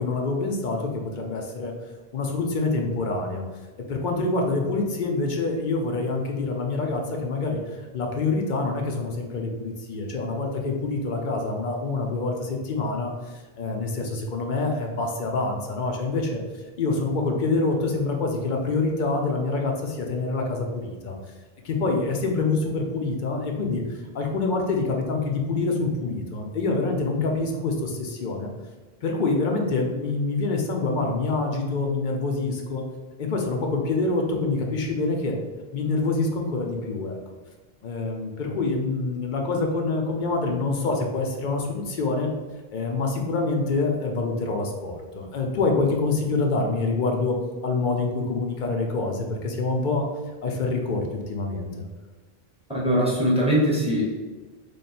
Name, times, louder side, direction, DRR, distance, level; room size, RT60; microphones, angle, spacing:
voice 1, 0.0-1.7 2.1-3.4 3.9-7.6 7.9-13.1 13.6-16.4 16.8-21.1 21.6-23.8 24.1-28.5 29.0-32.8 33.2-35.4 35.7-37.2 37.8-42.3 42.7-50.0 50.4-51.7, left 3 dB, 55° left, 2 dB, 0.6 m, -26 dB
voice 2, 52.7-54.1, equal, 5° right, -5 dB, 0.8 m, -21 dB
3.3 x 2.1 x 4.1 m, 1.3 s
omnidirectional pair, 1.0 m